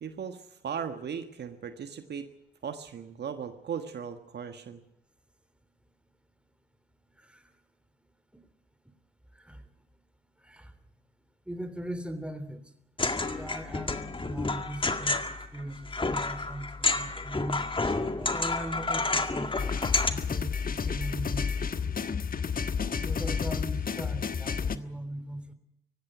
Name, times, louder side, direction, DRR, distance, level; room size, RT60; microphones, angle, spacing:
voice 1, 0.0-2.3 2.6-4.8, right 7 dB, 55° right, 8 dB, 1.5 m, -37 dB
voice 2, 11.5-12.6 13.3-13.9 14.2-17.7 18.2-21.9 23.0-25.5, right 1 dB, 5° right, 11 dB, 3.3 m, -39 dB
sound 1, 13.0-20.1, left 3 dB, 25° left, 2.0 m, -30 dB
sound 2, 19.6-24.8, left 6 dB, 45° left, 1.3 m, -31 dB
19.0 x 15.5 x 9.3 m, 0.83 s
hypercardioid pair, 50°, 20 cm